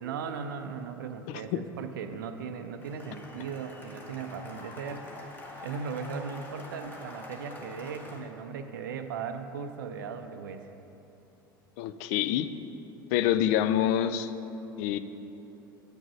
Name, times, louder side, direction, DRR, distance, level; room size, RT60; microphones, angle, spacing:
voice 1, 0.0-5.4 5.6-10.7, right 6 dB, 65° right, 8 dB, 0.5 m, -38 dB
Cheering / Applause, 2.8-8.2, left 1 dB, 15° left, 1.4 m, -45 dB
voice 2, 11.8-12.5 13.1-14.3 14.8-15.0, left 11 dB, 50° left, 12 dB, 0.4 m, -26 dB
8.5 x 6.1 x 5.3 m, 3.0 s
figure-of-eight pair, 75°, 12 cm